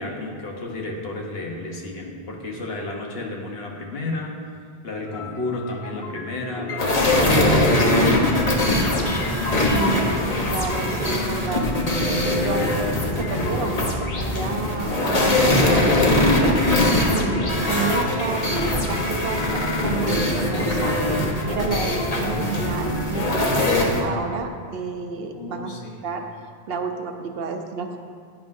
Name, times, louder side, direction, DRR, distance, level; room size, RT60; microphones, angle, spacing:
voice 1, 0.0-4.4 4.8-8.3 25.3-26.0, left 2 dB, 70° left, 0 dB, 1.3 m, -32 dB
sound 1, 5.1-7.7 8.6-11.0 11.5-18.3 18.9-24.2, left 3 dB, 85° left, 1.1 m, -37 dB
sound 2, 6.8-24.0, left 1 dB, 40° left, 1.1 m, -21 dB
voice 2, 9.7-11.7 12.0-12.7 13.1-16.6 17.1-21.0 21.5-25.7 26.0-26.3 26.7-28.0, right 5 dB, 70° right, 5 dB, 0.9 m, -30 dB
10.5 x 9.6 x 2.7 m, 2.1 s
omnidirectional pair, 1.1 m